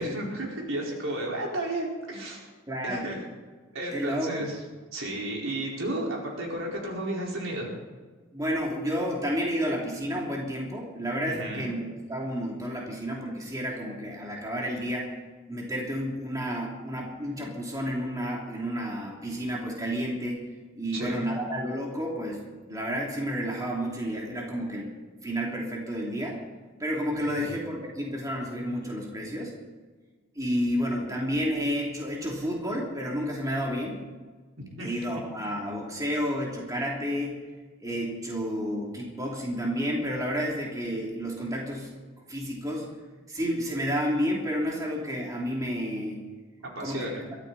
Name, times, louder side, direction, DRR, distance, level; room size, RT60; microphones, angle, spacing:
voice 1, 0.0-2.5 2.8-3.2 3.7-4.6 4.9-7.7 11.2-11.7 20.9-21.4 27.2-27.6 34.6-34.9 46.7-47.2, right 1 dB, 75° right, -2 dB, 4.6 m, -33 dB
voice 2, 2.7-3.0 3.9-4.5 8.3-15.1 15.5-20.4 20.7-24.9 25.2-26.4 26.8-29.5 30.3-34.0 34.8-37.4 37.8-41.9 42.3-42.9 43.3-46.2 46.8-47.2, equal, 15° right, -3 dB, 3.0 m, -31 dB
22.5 x 14.0 x 4.2 m, 1.4 s
head